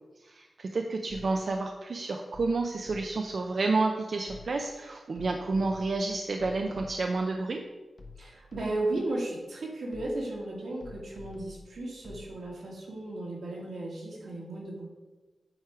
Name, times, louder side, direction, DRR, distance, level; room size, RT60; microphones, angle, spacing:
voice 1, 0.2-7.6, right 3 dB, 50° right, 3 dB, 0.5 m, -30 dB
sound 1, 1.1-1.6 2.3-3.4 4.3-4.8 5.2-7.3 8.0-9.0 9.9-10.4 10.8-12.3, left 3 dB, 55° left, 1.3 m, -49 dB
voice 2, 8.2-14.9, right 2 dB, 80° right, -3 dB, 2.3 m, -35 dB
8.6 x 4.8 x 4.8 m, 1.2 s
wide cardioid pair, 165°, 0 cm